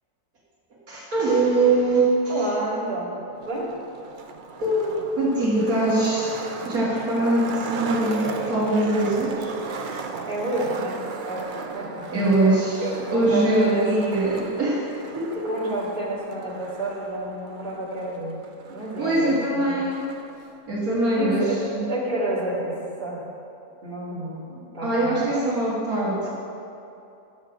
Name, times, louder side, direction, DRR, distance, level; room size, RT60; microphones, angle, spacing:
voice 1, 0.9-2.2 4.6-9.5 12.1-12.8 13.1-14.9 15.1-15.5 19.0-20.0 20.7-21.8 24.8-26.3, right 2 dB, 70° right, -6 dB, 2.2 m, -22 dB
voice 2, 2.3-3.7 10.3-11.0 11.3-12.0 12.8-13.9 15.4-18.4 18.7-19.8 21.1-21.6 21.9-23.2 23.8-25.2, right 1 dB, 35° right, -8 dB, 2.5 m, -30 dB
Skateboard, 3.3-20.4, right 4 dB, 55° right, 0.5 m, -37 dB
11.0 x 7.4 x 5.0 m, 2.7 s
omnidirectional pair, 1.6 m